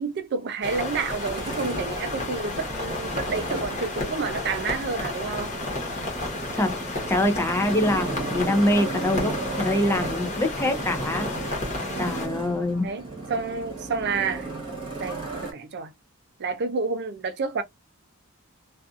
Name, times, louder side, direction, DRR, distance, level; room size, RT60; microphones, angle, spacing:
voice 1, 0.0-5.6 11.8-12.1 12.8-13.0 13.3-14.5 15.0-15.9 16.4-17.6, right 4 dB, 50° right, 0.5 m, -29 dB
sound 1, 0.6-12.3, left 2 dB, 35° left, 1.0 m, -32 dB
Motorcycle, 0.9-15.5, right 3 dB, 25° right, 1.0 m, -35 dB
voice 2, 6.5-11.3 12.0-12.9, left 1 dB, 10° left, 0.5 m, -25 dB
2.4 x 2.4 x 2.4 m
head